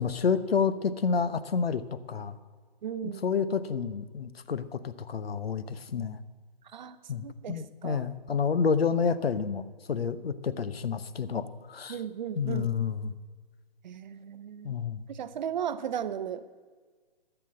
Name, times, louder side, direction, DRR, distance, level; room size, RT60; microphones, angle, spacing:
voice 1, 0.0-1.8 2.1-2.4 3.0-6.2 7.1-12.0 12.4-13.1 14.6-15.1, left 6 dB, 80° left, 15 dB, 0.9 m, -29 dB
voice 2, 2.8-3.2 6.7-8.1 11.9-12.7 13.8-14.8 15.1-16.6, right 9 dB, 50° right, 13 dB, 0.7 m, -36 dB
13.5 x 6.9 x 7.6 m, 1.5 s
hypercardioid pair, 145°, 30 cm